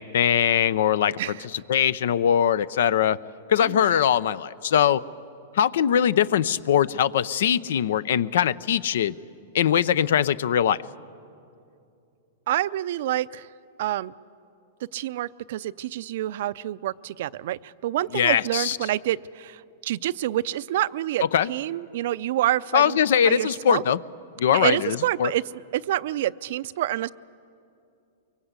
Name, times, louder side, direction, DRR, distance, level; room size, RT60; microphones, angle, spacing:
voice 1, 0.0-1.2 1.7-3.2 3.5-5.0 5.6-9.1 9.5-10.8 18.1-18.8 21.3-21.5 22.7-24.0 24.4-25.3, left 9 dB, 75° left, 19 dB, 0.6 m, -21 dB
voice 2, 3.6-3.9 12.5-13.5 13.8-14.1 14.9-23.0 23.2-23.8 24.5-27.1, right 14 dB, 65° right, 17 dB, 0.5 m, -27 dB
23.5 x 23.5 x 8.2 m, 2.6 s
hypercardioid pair, 140°, 0 cm